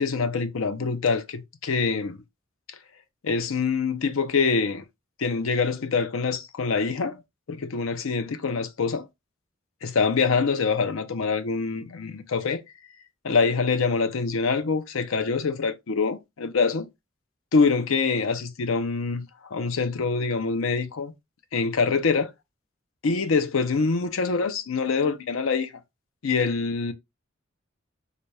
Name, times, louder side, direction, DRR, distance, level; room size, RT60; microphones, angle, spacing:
voice 1, 0.0-2.2 3.2-4.8 5.2-7.2 7.5-9.1 9.8-12.6 13.2-16.9 17.5-21.1 21.5-22.3 23.0-25.7 26.2-26.9, left 4 dB, 90° left, 0.6 m, -25 dB
4.0 x 2.2 x 3.2 m
head